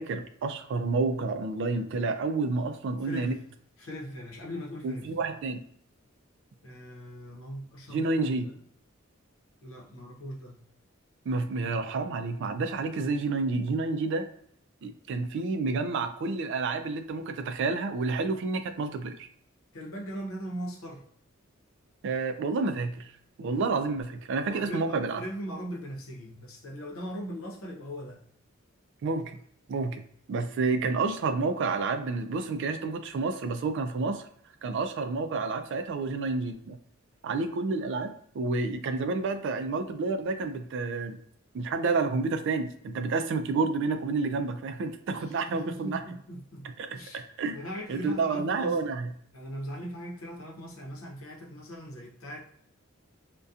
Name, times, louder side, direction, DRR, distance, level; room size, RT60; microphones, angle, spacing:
voice 1, 0.0-3.3 4.8-5.6 7.9-8.5 11.3-14.3 14.8-19.3 22.0-23.1 23.4-25.2 29.0-29.4 29.7-30.0 30.3-34.3 34.6-36.8 37.2-41.2 41.5-46.0 46.8-46.9 47.1-47.6 47.9-49.1, right 3 dB, 60° right, 8 dB, 0.3 m, -29 dB
voice 2, 3.0-3.5 3.8-5.2 6.6-8.6 9.6-10.7 19.7-21.0 24.4-28.3 45.2-46.6 46.9-47.2 47.5-48.9 49.3-52.5, equal, 90° left, -1 dB, 0.7 m, -40 dB
2.6 x 2.2 x 2.4 m, 0.63 s
head